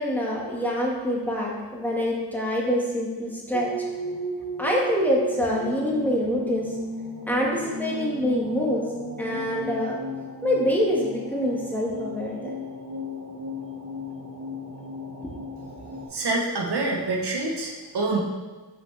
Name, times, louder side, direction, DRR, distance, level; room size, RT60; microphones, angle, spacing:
voice 1, 0.0-3.7 4.6-6.7 7.3-8.8 9.2-10.0 10.4-12.6, equal, 5° left, -4 dB, 1.6 m, -25 dB
sound 1, 3.5-16.1, equal, 30° right, 1.3 m, -35 dB
voice 2, 16.1-18.2, right 2 dB, 70° right, -1 dB, 1.1 m, -26 dB
5.8 x 5.4 x 3.3 m, 1.3 s
cardioid pair, 50°, 40 cm